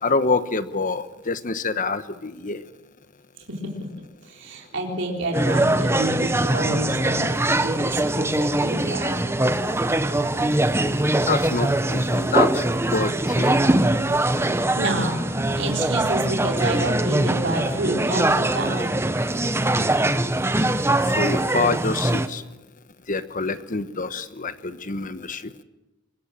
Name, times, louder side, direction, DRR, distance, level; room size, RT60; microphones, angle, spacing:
voice 1, 0.0-2.6 11.3-13.6 21.1-22.4 23.1-25.5, left 3 dB, 40° left, 12 dB, 1.2 m, -26 dB
voice 2, 3.5-3.9 4.2-9.2 14.4-15.2 15.6-18.9, right 1 dB, 65° right, 1 dB, 4.1 m, -29 dB
sound 1, 5.3-22.3, right 1 dB, 15° right, 1.0 m, -22 dB
sound 2, 9.8-17.1, right 1 dB, 85° right, 3.5 m, -42 dB
24.5 x 21.5 x 7.5 m, 1.0 s
head